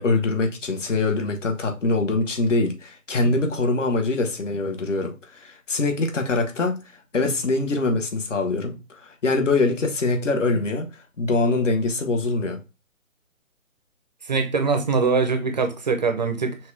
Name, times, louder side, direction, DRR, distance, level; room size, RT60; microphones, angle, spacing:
voice 1, 0.0-12.6, left 3 dB, 65° left, 1.1 m, -24 dB
voice 2, 14.3-16.6, right 4 dB, 35° right, 0.6 m, -22 dB
5.9 x 2.3 x 3.2 m
figure-of-eight pair, 140°, 40 cm